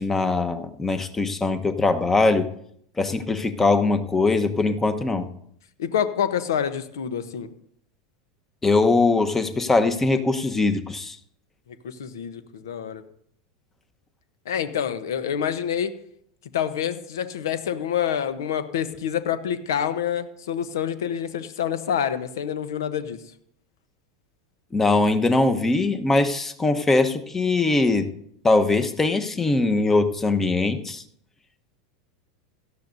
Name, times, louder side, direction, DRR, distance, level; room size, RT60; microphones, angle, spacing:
voice 1, 0.0-2.5 3.0-5.3 8.6-11.2 24.7-28.1 28.4-31.0, left 3 dB, 15° left, 8 dB, 1.1 m, -21 dB
voice 2, 5.8-7.5 11.8-13.0 14.5-15.9 16.5-23.2, left 9 dB, 75° left, 12 dB, 0.9 m, -27 dB
17.0 x 12.5 x 2.7 m, 0.70 s
hypercardioid pair, 85°, 2 cm